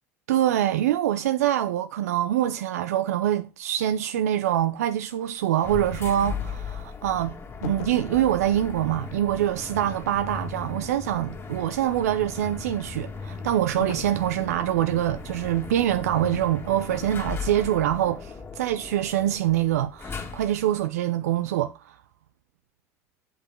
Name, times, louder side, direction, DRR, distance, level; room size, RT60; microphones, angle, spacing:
voice 1, 0.3-7.3 7.6-22.0, right 12 dB, 85° right, 0.6 m, -25 dB
sound 1, 5.6-20.8, left 5 dB, 30° left, 2.6 m, -37 dB
sound 2, 7.6-8.2 13.8-14.3 16.2-16.5 16.9-17.2, left 12 dB, 85° left, 0.9 m, -38 dB
8.4 x 7.6 x 3.7 m
hypercardioid pair, 75°, 8 cm